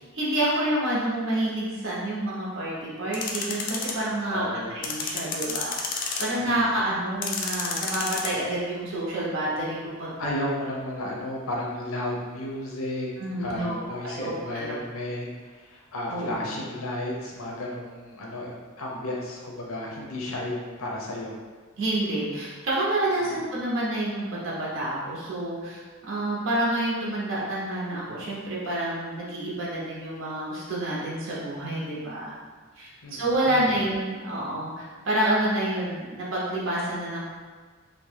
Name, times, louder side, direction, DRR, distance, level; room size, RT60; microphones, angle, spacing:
voice 1, 0.1-4.4 4.7-10.3 13.2-14.8 16.1-16.3 21.8-32.4 32.8-37.3, right 1 dB, 65° right, -6 dB, 0.6 m, -28 dB
sound 1, 3.1-3.9 4.8-6.4 7.2-8.3, left 4 dB, 40° left, 0.3 m, -30 dB
voice 2, 4.3-4.7 6.4-6.8 10.2-13.1 13.4-21.3 23.2-23.5 33.0-33.8, left 1 dB, 85° left, -2 dB, 0.6 m, -33 dB
2.7 x 2.0 x 3.2 m, 1.4 s
head